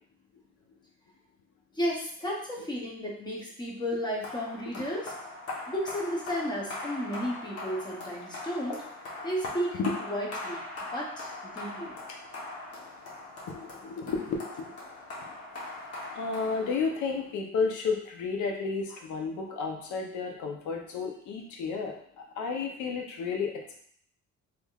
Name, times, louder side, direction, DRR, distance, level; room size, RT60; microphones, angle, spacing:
voice 1, 1.7-5.1 5.7-8.8 9.2-10.6 10.9-12.0, equal, 15° left, -3 dB, 0.6 m, -33 dB
sound 1, 4.2-17.3, left 2 dB, 55° left, 1.0 m, -41 dB
voice 2, 13.5-14.7 16.1-23.8, left 4 dB, 90° left, 2 dB, 0.6 m, -32 dB
3.4 x 3.2 x 2.3 m, 0.62 s
cardioid pair, 170°, 29 cm